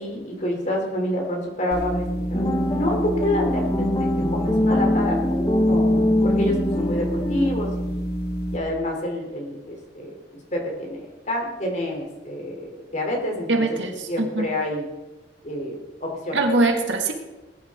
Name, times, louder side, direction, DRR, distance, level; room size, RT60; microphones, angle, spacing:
voice 1, 0.0-6.0 6.2-8.0 8.5-10.1 10.5-13.6 14.1-14.8 15.4-16.5, left 1 dB, 40° left, 1 dB, 3.4 m, -28 dB
sound 1, 1.7-8.6, right 1 dB, 55° left, 1.8 m, -28 dB
sound 2, 2.3-7.5, left 1 dB, 25° left, 1.1 m, -23 dB
voice 2, 13.5-14.5 16.3-17.1, right 2 dB, 80° right, 3 dB, 2.0 m, -22 dB
19.5 x 11.0 x 3.7 m, 1.1 s
head